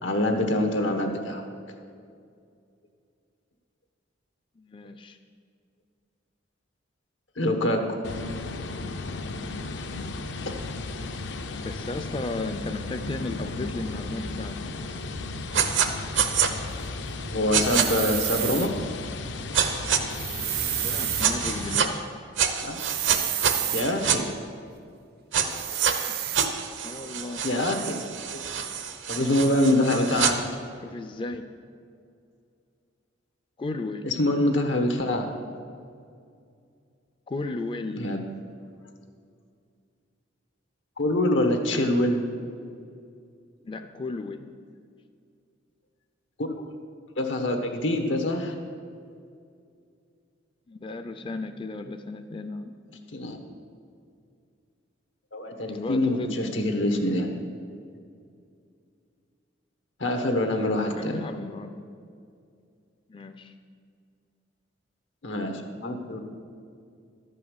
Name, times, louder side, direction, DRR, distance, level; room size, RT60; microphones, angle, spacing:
voice 1, 0.0-1.4 7.4-8.0 10.4-10.5 17.3-18.7 22.6-22.8 23.7-24.3 25.4-25.8 27.4-27.9 28.3-28.4 29.1-30.4 34.0-35.3 38.0-38.2 41.0-42.2 46.4-46.5 47.2-48.5 53.1-53.4 55.3-57.3 60.0-61.2 65.2-66.2, left 1 dB, 90° left, 4 dB, 1.4 m, -25 dB
voice 2, 4.6-5.2 11.6-14.6 20.8-22.1 26.8-27.5 30.8-31.4 33.6-34.1 37.3-38.1 43.6-44.5 50.7-52.7 55.7-56.4 61.0-61.8 63.1-63.5, left 2 dB, 30° left, 7 dB, 0.4 m, -34 dB
sound 1, 8.0-21.8, left 3 dB, 70° left, 0.6 m, -35 dB
sound 2, 15.5-15.9 16.2-16.5 17.5-17.9 19.5-20.0 21.2-21.9 22.4-24.2 25.3-25.9 26.3-30.3, right 8 dB, 80° right, 0.9 m, -26 dB
sound 3, 17.6-18.7 20.1-21.3 22.8-23.9 25.5-26.5, right 13 dB, 55° right, 0.5 m, -30 dB
12.5 x 5.5 x 8.2 m, 2.3 s
head